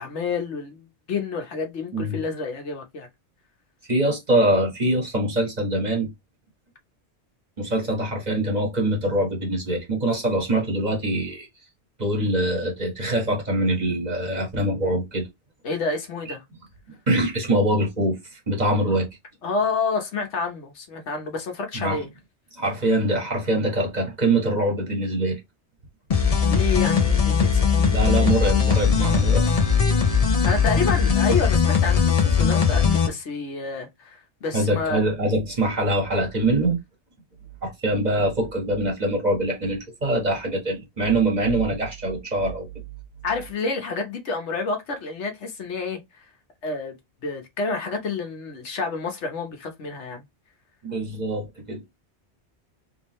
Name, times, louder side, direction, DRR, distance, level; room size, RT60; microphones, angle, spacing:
voice 1, 0.0-3.1 15.6-16.4 18.9-19.0 19.4-22.1 26.5-28.0 30.4-35.0 43.2-46.2 46.6-47.0 47.2-50.2, left 4 dB, 85° left, 1.4 m, -29 dB
voice 2, 3.9-6.1 7.6-11.5 12.0-15.2 17.1-19.1 21.7-22.0 22.6-25.4 27.9-29.4 34.5-36.8 37.6-42.7 50.8-51.8, right 1 dB, 40° right, 1.6 m, -23 dB
sound 1, 26.1-33.1, left 6 dB, 40° left, 0.7 m, -19 dB
3.6 x 3.4 x 3.1 m
omnidirectional pair, 1.2 m